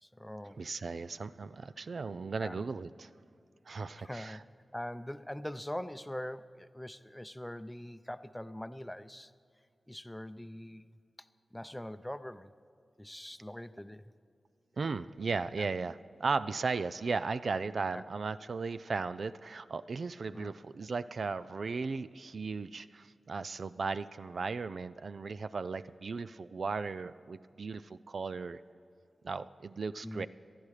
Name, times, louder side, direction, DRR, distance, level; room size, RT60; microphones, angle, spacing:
voice 1, 0.0-0.6 2.4-2.5 4.0-4.4 4.7-9.3 9.9-10.9 11.2-11.3 11.5-12.5 13.0-14.1 15.6-15.7 17.9-18.0 20.3-20.5 30.0-30.3, left 1 dB, 10° left, 13 dB, 0.6 m, -42 dB
voice 2, 0.6-3.1 3.7-4.4 14.8-28.6 29.2-30.3, right 4 dB, 70° right, 14 dB, 0.4 m, -36 dB
19.0 x 12.0 x 4.9 m, 2.5 s
cardioid pair, 45°, 0 cm